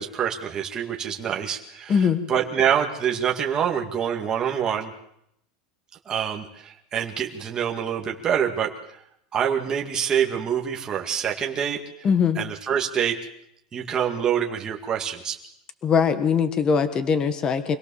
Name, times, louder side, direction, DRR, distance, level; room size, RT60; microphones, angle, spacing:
voice 1, 0.0-4.9 6.1-8.7 9.3-12.1 12.4-13.2 13.7-15.4, right 8 dB, 15° right, 0 dB, 2.1 m, -26 dB
voice 2, 1.9-2.2 12.0-12.4 15.8-17.8, left 6 dB, 20° left, 10 dB, 1.4 m, -21 dB
25.5 x 17.5 x 7.1 m, 0.75 s
supercardioid pair, 175°, 4 cm